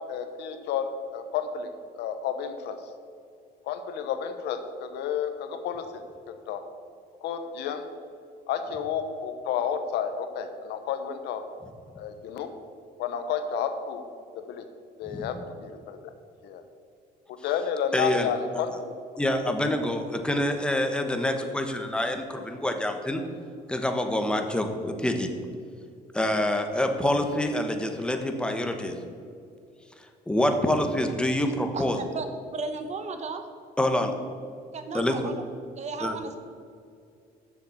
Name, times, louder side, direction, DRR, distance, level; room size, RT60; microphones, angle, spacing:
voice 1, 0.0-2.9 3.6-6.6 7.2-7.9 8.5-11.5 12.0-12.6 13.0-14.1 14.3-14.7 15.0-16.0 16.4-16.6 17.3-19.0, left 7 dB, 85° left, 8 dB, 1.0 m, -31 dB
voice 2, 17.9-18.3 19.2-23.2 23.7-25.3 26.1-28.9 30.3-32.0 33.8-34.1 34.9-35.3 36.0-36.2, left 1 dB, 5° left, 5 dB, 1.1 m, -26 dB
voice 3, 31.7-32.2 32.5-33.4 34.7-35.4 35.8-36.4, right 4 dB, 40° right, 8 dB, 1.0 m, -34 dB
7.3 x 6.9 x 7.1 m, 2.4 s
cardioid pair, 110°, 17 cm